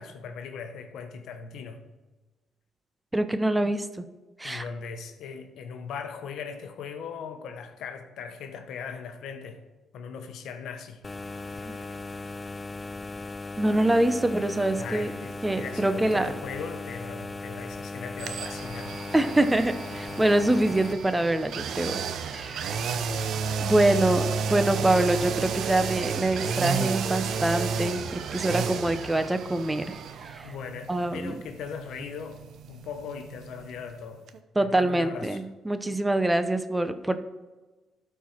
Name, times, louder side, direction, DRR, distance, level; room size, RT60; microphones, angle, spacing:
voice 1, 0.0-1.9 4.4-9.7 9.9-11.0 11.6-11.7 14.7-19.0 22.7-23.3 30.4-34.3 34.6-35.4, left 6 dB, 80° left, 1.0 m, -39 dB
voice 2, 3.1-4.0 4.4-4.6 13.6-15.1 15.4-16.3 19.1-22.8 23.6-30.5 30.9-31.3 34.6-37.2, right 1 dB, 10° right, 0.7 m, -25 dB
sound 1, 11.0-20.9, left 3 dB, 25° left, 0.3 m, -37 dB
sound 2, 18.2-34.0 34.3-34.4, right 6 dB, 70° right, 0.7 m, -32 dB
12.5 x 4.7 x 4.4 m
cardioid pair, 90°, 0 cm